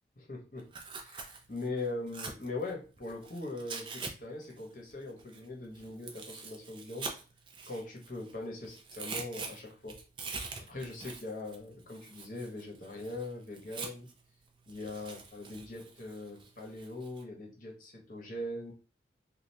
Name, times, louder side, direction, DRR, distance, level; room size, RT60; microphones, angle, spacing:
voice 1, 0.2-0.7 1.0-1.2 1.5-7.1 7.7-10.0 10.7-14.1 14.7-18.7, left 2 dB, 45° left, 0 dB, 1.0 m, -41 dB
Tearing, 0.6-4.1 4.4-8.3 8.6-14.2 14.7-17.2, right 4 dB, 25° right, 0.4 m, -44 dB
3.2 x 2.4 x 2.7 m, 0.34 s
head